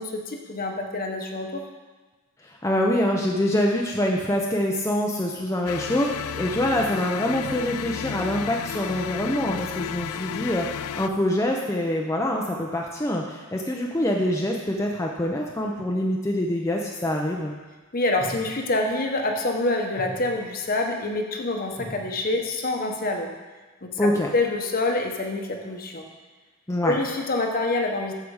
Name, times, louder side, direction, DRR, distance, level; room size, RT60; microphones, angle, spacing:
voice 1, 0.0-1.6 17.9-23.3 23.8-23.9 24.3-26.0 26.8-28.1, left 2 dB, 45° left, 3 dB, 1.0 m, -26 dB
voice 2, 2.4-17.5 24.0-24.3 26.7-27.0, left 1 dB, 15° left, -1 dB, 0.6 m, -25 dB
sound 1, 5.7-11.1, left 9 dB, 80° left, 0.3 m, -33 dB
sound 2, 16.8-16.9 18.2-18.9 19.3-19.6 20.0-20.9 21.8-22.6 22.9-23.2, right 1 dB, 40° right, 2.2 m, -42 dB
13.5 x 5.0 x 4.8 m, 1.3 s
head